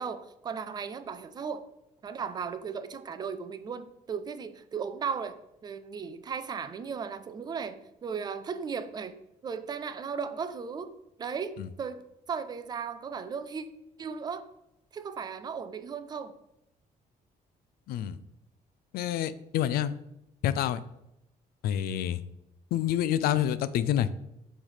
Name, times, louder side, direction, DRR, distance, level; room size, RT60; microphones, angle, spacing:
voice 1, 0.0-1.6 2.0-9.2 9.4-10.9 11.2-13.7 14.0-14.4 14.9-16.3, right 6 dB, 25° right, 11 dB, 0.3 m, -36 dB
voice 2, 17.9-18.2 18.9-20.0 20.4-20.8 21.6-22.2 22.7-24.1, left 11 dB, 90° left, 15 dB, 0.4 m, -27 dB
6.3 x 3.3 x 5.7 m, 0.85 s
cardioid pair, 180°, 15 cm